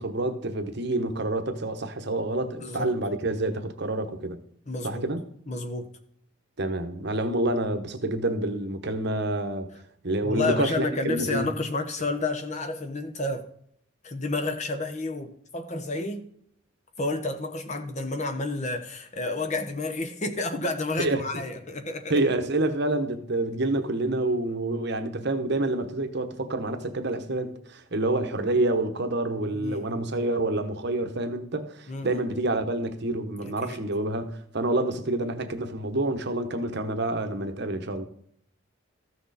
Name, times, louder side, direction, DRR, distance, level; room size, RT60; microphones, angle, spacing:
voice 1, 0.0-4.4 4.8-5.2 6.6-9.7 10.0-11.5 21.0-21.2 22.1-38.0, right 2 dB, 50° right, 1.0 m, -28 dB
voice 2, 2.6-2.9 4.7-5.1 5.5-5.9 10.2-13.5 14.0-16.3 17.0-22.2 29.5-30.0 31.9-32.2 33.4-33.8, left 2 dB, 30° left, 1.0 m, -30 dB
14.5 x 6.4 x 4.1 m
head